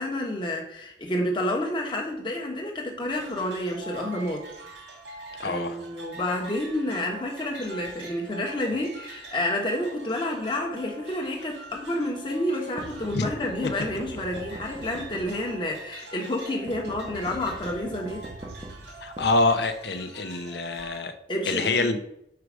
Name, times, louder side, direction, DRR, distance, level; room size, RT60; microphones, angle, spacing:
voice 1, 0.0-4.5 5.4-18.3 21.3-21.9, left 1 dB, 25° left, 1 dB, 1.2 m, -29 dB
sound 1, 3.1-21.0, right 3 dB, 85° right, 2.0 m, -44 dB
voice 2, 5.4-5.8 13.1-13.3 19.0-21.1 21.5-22.0, left 3 dB, 65° left, 8 dB, 0.7 m, -25 dB
sound 2, 12.8-15.7 16.7-20.0, right 1 dB, 25° right, 0.8 m, -41 dB
4.8 x 4.8 x 6.2 m, 0.78 s
head